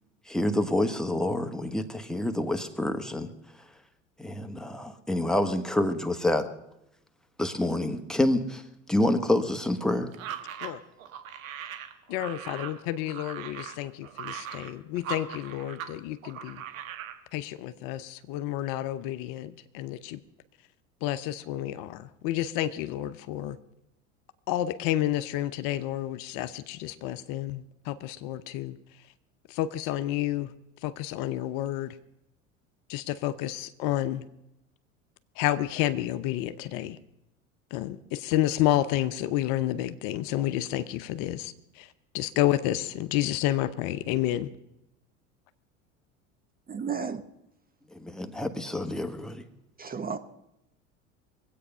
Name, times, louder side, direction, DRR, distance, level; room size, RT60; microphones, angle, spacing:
voice 1, 0.3-3.3 4.2-6.5 7.4-10.1 47.9-49.4, left 1 dB, ahead, 6 dB, 1.4 m, -27 dB
sound 1, 10.1-15.9 16.2-17.2, right 9 dB, 75° right, 1.5 m, -40 dB
voice 2, 12.1-16.6 17.3-20.2 21.0-23.6 24.5-28.8 29.5-30.5 30.8-32.0 32.9-34.2 35.4-37.0 37.7-44.5, left 13 dB, 55° left, 12 dB, 0.8 m, -30 dB
voice 3, 46.7-47.2 49.8-50.2, right 6 dB, 20° right, 10 dB, 0.9 m, -32 dB
22.5 x 8.6 x 5.5 m, 0.87 s
hypercardioid pair, 80°, 41 cm